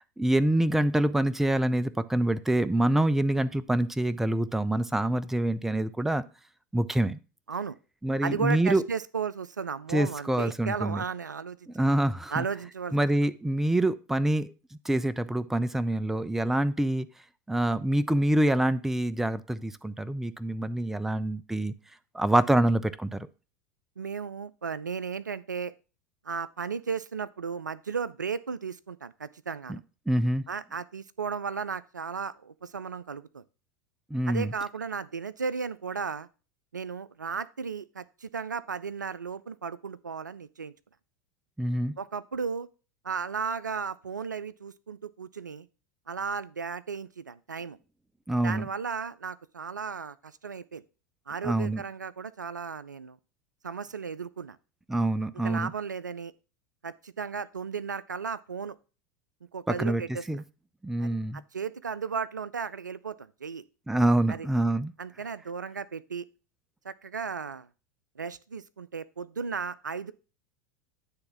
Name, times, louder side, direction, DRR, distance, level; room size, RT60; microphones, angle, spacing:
voice 1, 0.0-6.2 6.7-7.2 8.0-8.8 9.9-11.0 11.7-12.4 12.9-14.5 14.9-17.1 17.5-21.7 22.1-23.3 29.7-29.8 30.1-30.4 34.1-34.5 41.6-41.9 48.3-48.6 51.4-51.8 54.9-55.7 59.7-60.0 60.3-60.4 60.8-61.4 63.9-64.9, right 1 dB, 5° right, 0.4 m, -26 dB
voice 2, 8.2-11.6 12.3-13.1 24.0-25.7 26.3-29.8 30.5-33.4 34.3-36.3 36.7-40.7 42.0-42.7 43.0-45.7 46.1-47.8 48.4-50.8 51.3-53.2 53.6-54.6 55.4-56.3 56.8-58.8 59.5-60.3 61.0-63.6 64.3-64.5 65.0-66.3 66.8-67.7 68.2-70.1, right 5 dB, 80° right, 0.4 m, -35 dB
9.7 x 3.5 x 5.8 m
figure-of-eight pair, 85°, 10 cm